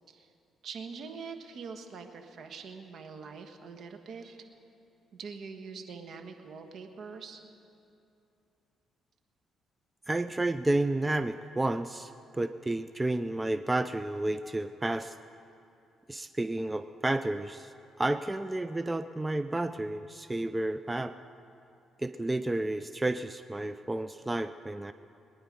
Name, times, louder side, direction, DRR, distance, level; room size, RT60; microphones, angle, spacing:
voice 1, 0.6-4.4 5.1-7.4, right 5 dB, 65° right, 6 dB, 1.4 m, -44 dB
voice 2, 10.1-15.1 16.1-21.2 22.0-24.9, right 2 dB, 15° right, 11 dB, 0.4 m, -31 dB
22.5 x 10.0 x 5.2 m, 2.7 s
cardioid pair, 90°, 0 cm